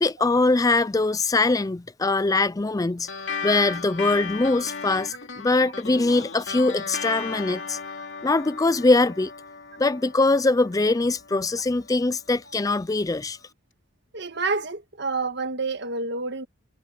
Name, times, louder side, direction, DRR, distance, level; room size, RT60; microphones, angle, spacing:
voice 1, 0.0-3.1 3.4-7.8 8.2-9.3 9.8-13.4, left 2 dB, 15° left, 0.4 m, -22 dB
sound 1, 3.1-11.9, left 5 dB, 65° left, 2.8 m, -36 dB
voice 2, 14.1-16.5, right 3 dB, 55° right, 1.7 m, -28 dB
head